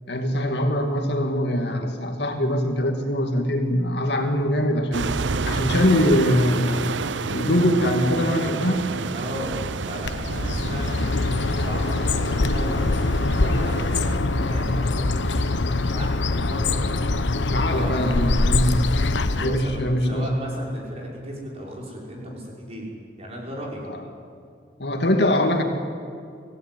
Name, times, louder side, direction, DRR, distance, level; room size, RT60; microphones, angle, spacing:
voice 1, 0.1-5.1 5.5-8.9 17.4-18.9 19.4-20.3 23.9-24.0 24.8-25.6, equal, 65° left, 4 dB, 2.4 m, -22 dB
sound 1, 4.9-14.2, right 4 dB, 85° right, 0.7 m, -30 dB
voice 2, 9.1-16.8 17.6-18.1 19.3-22.9 23.2-23.9, equal, 35° right, -2 dB, 5.9 m, -36 dB
Bird, 10.0-19.7, left 2 dB, 80° left, 1.0 m, -23 dB
25.5 x 16.5 x 9.4 m, 2.3 s
head